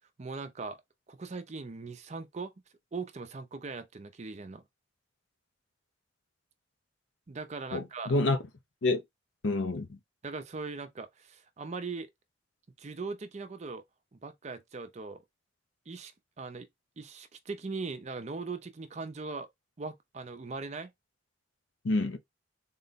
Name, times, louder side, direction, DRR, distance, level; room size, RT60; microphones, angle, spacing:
voice 1, 0.2-0.8 1.1-2.5 2.9-4.6 7.3-8.1 10.2-12.1 12.8-13.8 14.2-15.2 15.9-16.1 16.4-16.7 17.0-19.5 19.8-20.9, right 4 dB, 35° right, 0.5 m, -40 dB
voice 2, 7.7-8.4 8.8-9.0 9.4-10.0 21.8-22.2, left 2 dB, 75° left, 0.6 m, -28 dB
3.8 x 2.1 x 3.9 m
head